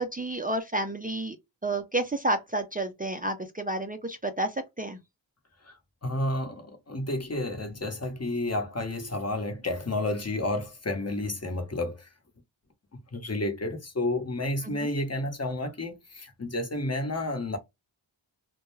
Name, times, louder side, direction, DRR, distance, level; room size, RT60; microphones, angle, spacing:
voice 1, 0.0-1.4 1.6-5.0 14.6-14.9, right 2 dB, 20° right, 0.4 m, -30 dB
voice 2, 6.0-12.1 13.1-17.6, left 2 dB, 35° left, 0.9 m, -31 dB
2.3 x 2.1 x 3.1 m
cardioid pair, 45°, 46 cm